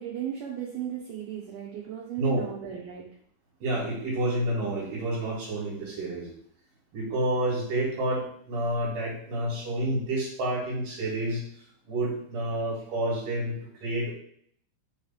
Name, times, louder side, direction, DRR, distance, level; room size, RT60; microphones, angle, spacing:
voice 1, 0.0-3.1, right 9 dB, 75° right, -2 dB, 2.4 m, -36 dB
voice 2, 3.6-6.3 6.9-11.4 11.9-13.5 13.8-14.1, right 1 dB, 55° right, -7 dB, 2.8 m, -29 dB
6.4 x 3.2 x 5.6 m, 0.63 s
omnidirectional pair, 5.2 m